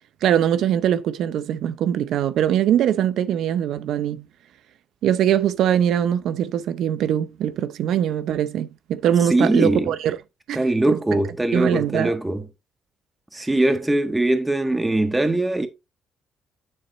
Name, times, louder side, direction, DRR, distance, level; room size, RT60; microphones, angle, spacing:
voice 1, 0.2-4.3 5.0-10.2 10.5-10.6 10.9-11.0 11.5-12.2 13.4-13.5, right 10 dB, 80° right, 0.6 m, -22 dB
voice 2, 9.3-9.9 10.5-12.4 13.3-15.7, right 2 dB, 15° right, 1.6 m, -21 dB
9.9 x 4.0 x 4.0 m
cardioid pair, 90°, 0 cm